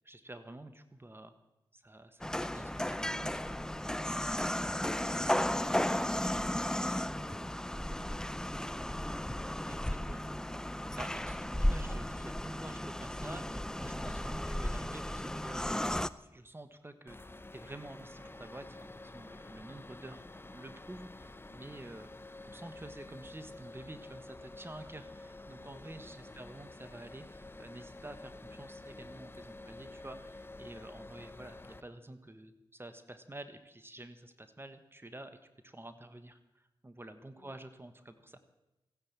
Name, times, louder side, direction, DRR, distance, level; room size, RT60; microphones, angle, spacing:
voice 1, 0.0-1.3 1.7-3.5 9.7-10.2 10.9-22.1 22.4-35.4 35.6-38.4, right 1 dB, 25° right, 10 dB, 1.4 m, -49 dB
sound 1, 2.2-16.1, left 1 dB, 5° left, 0.6 m, -34 dB
voice 2, 9.8-10.6 25.6-26.4 37.3-37.5, left 2 dB, 60° left, 3 dB, 4.6 m, -59 dB
sound 2, 17.1-31.8, left 2 dB, 25° left, 1.0 m, -49 dB
16.0 x 10.0 x 8.6 m, 0.96 s
cardioid pair, 45°, 10 cm